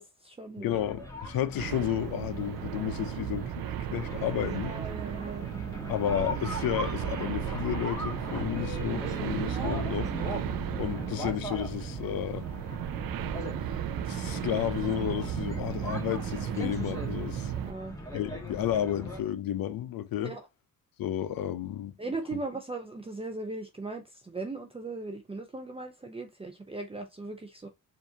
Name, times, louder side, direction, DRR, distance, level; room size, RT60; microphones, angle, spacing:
voice 1, 0.0-0.8 4.5-5.9 17.5-18.0 20.2-20.5 22.0-27.7, right 3 dB, 15° right, 0.6 m, -39 dB
voice 2, 0.6-4.7 5.9-10.1 10.8-12.4 14.0-17.5 18.1-20.3 21.0-21.9, left 11 dB, 85° left, 0.6 m, -32 dB
sound 1, 0.7-19.2, equal, 10° left, 1.3 m, -39 dB
sound 2, 1.6-17.7, right 11 dB, 80° right, 0.5 m, -35 dB
4.6 x 2.7 x 2.7 m
cardioid pair, 105°, 34 cm